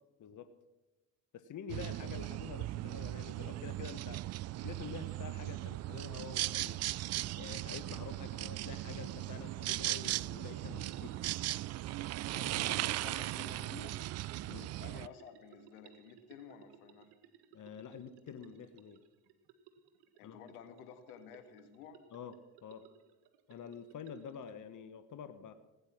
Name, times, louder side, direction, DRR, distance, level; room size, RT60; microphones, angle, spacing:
voice 1, 1.3-4.2 4.6-6.8 7.4-11.1 14.5-14.7 17.5-19.0 20.2-20.4 22.1-22.4 22.6-22.9 23.5-25.5, left 7 dB, 45° left, 11 dB, 1.4 m, -47 dB
sound 1, 1.7-15.1, right 16 dB, 40° right, 0.4 m, -38 dB
sound 2, 7.5-7.6 8.9-9.6 10.0-10.2 10.6-11.5 12.4-13.2 13.6-13.8, left 2 dB, 20° left, 2.9 m, -54 dB
sound 3, 8.4-24.5, right 8 dB, 65° right, 1.6 m, -62 dB
voice 2, 12.3-14.0 14.5-17.1 20.2-22.0, left 7 dB, 85° left, 8 dB, 1.7 m, -52 dB
17.5 x 9.5 x 6.2 m, 1.1 s
hypercardioid pair, 65°, 43 cm